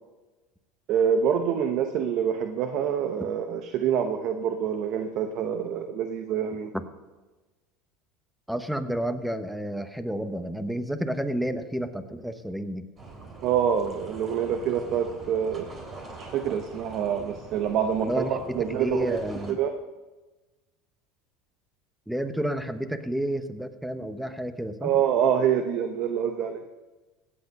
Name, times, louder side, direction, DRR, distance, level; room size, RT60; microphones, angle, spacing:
voice 1, 0.9-6.7 13.4-15.7 16.2-19.2 19.5-19.7 24.8-26.6, right 8 dB, 60° right, 7 dB, 0.9 m, -26 dB
voice 2, 8.5-12.8 18.0-19.6 22.1-24.9, right 1 dB, 5° right, 10 dB, 1.1 m, -30 dB
sound 1, 13.0-19.5, right 3 dB, 35° right, 3.6 m, -44 dB
16.5 x 8.6 x 5.4 m, 1.2 s
supercardioid pair, 100°, 0 cm